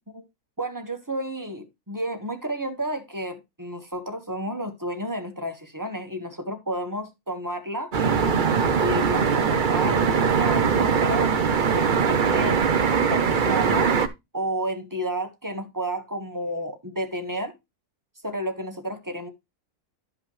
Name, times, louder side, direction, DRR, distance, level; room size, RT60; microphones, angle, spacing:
voice 1, 0.6-11.3 11.7-12.6 13.1-14.0 14.3-17.5 18.2-19.3, right 1 dB, 15° right, 1.3 m, -31 dB
sound 1, 7.9-14.1, right 6 dB, 45° right, 0.7 m, -21 dB
12.0 x 5.6 x 3.1 m
omnidirectional pair, 1.6 m